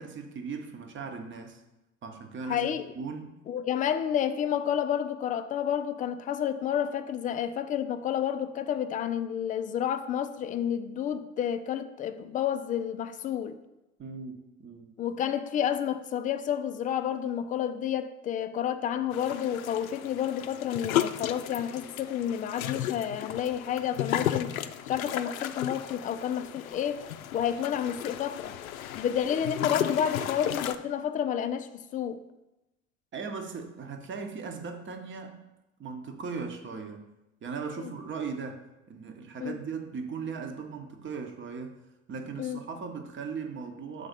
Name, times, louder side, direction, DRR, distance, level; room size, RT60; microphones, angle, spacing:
voice 1, 0.0-1.6 2.0-2.7 3.0-3.3 14.0-14.9 33.1-35.4 35.8-37.1 37.4-41.8 42.1-44.1, right 5 dB, 30° right, 1.0 m, -38 dB
voice 2, 2.5-2.9 3.5-13.6 15.0-27.1 27.3-28.5 29.0-32.2 37.8-37.9 39.4-39.6 42.4-42.6, left 9 dB, 20° left, 0.3 m, -30 dB
sound 1, 19.1-30.8, left 11 dB, 80° left, 0.5 m, -34 dB
6.6 x 4.0 x 5.2 m
hypercardioid pair, 75°, 41 cm